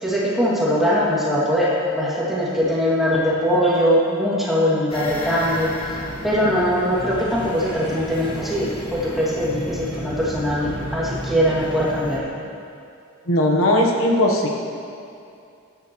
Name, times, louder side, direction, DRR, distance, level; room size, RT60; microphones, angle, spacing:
voice 1, 0.0-12.2, equal, ahead, -8 dB, 2.3 m, -21 dB
sound 1, 4.9-12.2, equal, 25° left, 1.4 m, -33 dB
voice 2, 13.3-14.5, left 1 dB, 75° left, 1 dB, 1.1 m, -18 dB
15.0 x 11.0 x 3.1 m, 2.5 s
head